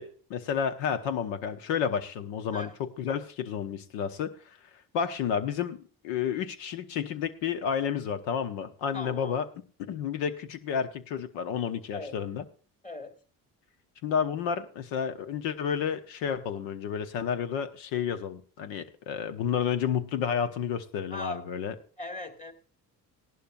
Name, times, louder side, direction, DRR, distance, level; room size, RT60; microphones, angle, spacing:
voice 1, 0.0-2.7 3.0-4.3 4.9-9.5 9.8-12.4 14.0-21.7, left 7 dB, 80° left, 10 dB, 1.1 m, -31 dB
voice 2, 8.9-9.4 11.9-12.2 12.8-13.2 21.1-21.4 22.0-22.5, left 2 dB, 15° left, 4 dB, 2.2 m, -39 dB
17.0 x 11.5 x 2.6 m, 0.39 s
hypercardioid pair, 55°, 44 cm